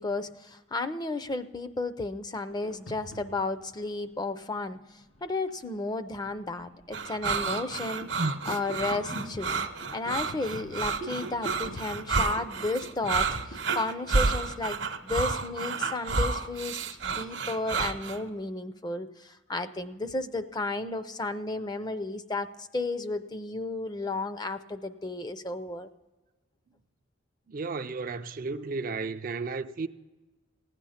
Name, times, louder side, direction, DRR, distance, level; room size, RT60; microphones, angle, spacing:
voice 1, 0.0-4.8 5.2-9.6 9.9-25.9, left 2 dB, 20° left, 0.5 m, -33 dB
sound 1, 2.5-3.7 4.7-5.8 6.3-13.8, right 1 dB, 75° left, 2.5 m, -45 dB
sound 2, 6.9-18.2, right 4 dB, 60° right, 0.9 m, -30 dB
voice 2, 27.5-29.9, right 4 dB, 45° right, 0.4 m, -33 dB
16.0 x 9.6 x 5.6 m
head